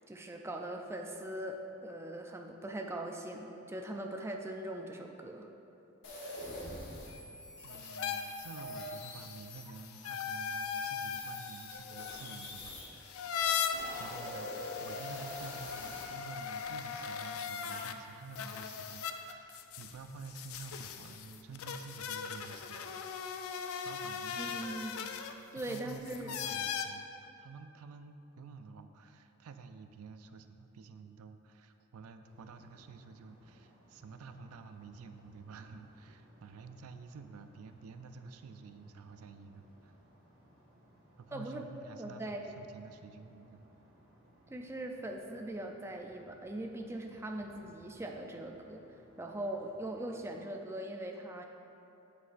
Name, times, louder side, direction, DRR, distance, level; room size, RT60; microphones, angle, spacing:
voice 1, 0.1-5.5 24.4-25.1 25.5-26.4 41.3-42.5 44.5-51.5, right 1 dB, 10° right, 2 dB, 0.3 m, -41 dB
sound 1, 6.0-12.9 13.3-16.0, left 1 dB, 55° left, 1.3 m, -46 dB
sound 2, 7.6-17.9 18.3-26.8, left 7 dB, 75° left, 0.4 m, -39 dB
voice 2, 7.6-13.5 14.0-14.5 14.8-22.9 23.8-24.9 25.5-40.0 41.2-43.7, right 4 dB, 90° right, 8 dB, 0.4 m, -50 dB
sound 3, 32.2-50.4, equal, 65° right, 1.5 m, -63 dB
8.1 x 7.7 x 2.5 m, 2.8 s
head